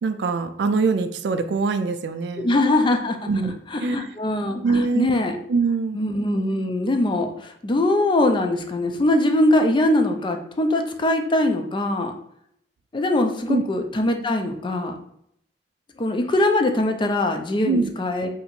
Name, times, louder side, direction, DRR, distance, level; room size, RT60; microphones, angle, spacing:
voice 1, 0.0-2.5 3.3-3.5 3.8-4.0 4.6-5.1 5.5-6.1 13.5-13.6 17.6-17.9, right 4 dB, 70° right, 10 dB, 0.3 m, -23 dB
voice 2, 2.4-3.2 3.7-5.4 5.9-12.1 12.9-15.0 16.0-18.3, left 1 dB, 30° left, 5 dB, 0.4 m, -22 dB
2.8 x 2.6 x 4.2 m, 0.71 s
head